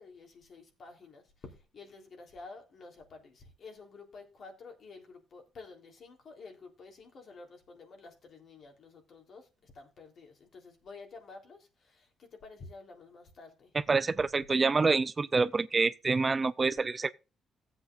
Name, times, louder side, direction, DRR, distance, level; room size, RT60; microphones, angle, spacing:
voice 1, 0.0-13.7, left 4 dB, 55° left, 3.4 m, -51 dB
voice 2, 13.7-17.1, right 4 dB, 30° right, 0.5 m, -27 dB
16.0 x 8.0 x 2.5 m
cardioid pair, 90°, 0 cm